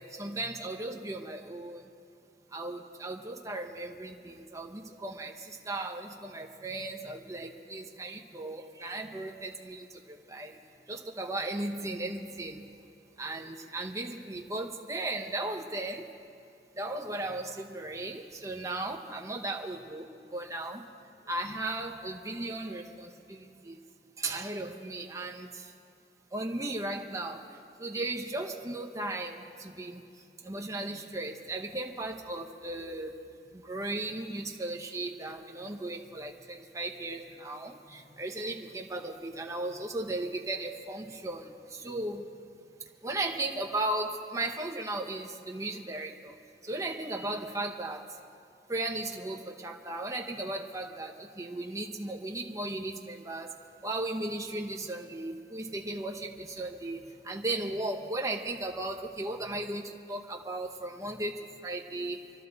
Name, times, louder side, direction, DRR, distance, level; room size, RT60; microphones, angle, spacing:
voice 1, 0.0-1.8 2.5-10.6 10.9-12.6 13.2-16.1 16.8-20.8 21.3-23.8 24.2-25.5 26.3-27.4 27.8-30.0 30.4-33.1 33.6-42.3 43.0-46.3 46.7-48.0 48.7-53.5 53.8-62.2, right 2 dB, 20° right, 2 dB, 0.9 m, -36 dB
26.5 x 12.0 x 4.0 m, 2.5 s
head